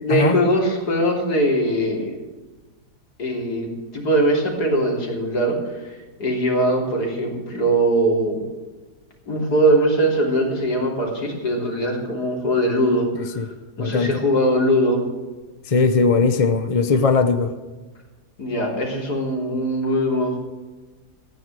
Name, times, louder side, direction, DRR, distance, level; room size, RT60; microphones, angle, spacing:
voice 1, 0.0-2.2 3.2-8.4 9.3-15.0 18.4-20.4, right 1 dB, 70° left, 0 dB, 3.8 m, -21 dB
voice 2, 13.8-14.1 15.7-17.5, left 4 dB, 35° left, 9 dB, 0.6 m, -19 dB
15.0 x 9.6 x 7.6 m, 1.2 s
omnidirectional pair, 1.8 m